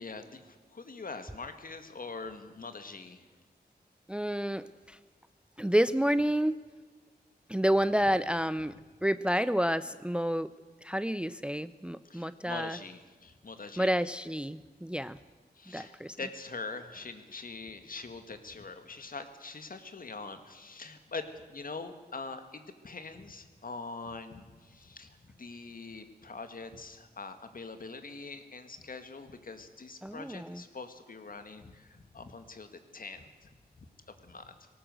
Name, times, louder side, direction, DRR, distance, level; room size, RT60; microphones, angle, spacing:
voice 1, 0.0-3.2 8.0-8.1 12.0-14.0 15.6-33.5 33.8-33.9 34.2-34.6, left 4 dB, 55° left, 8 dB, 2.0 m, -43 dB
voice 2, 4.1-5.0 5.6-6.6 7.5-8.7 9.0-10.5 10.8-12.8 13.8-15.2 15.7-16.2 30.0-30.6, equal, 5° right, 15 dB, 0.5 m, -29 dB
19.5 x 18.0 x 7.9 m, 1.3 s
wide cardioid pair, 75°, 17 cm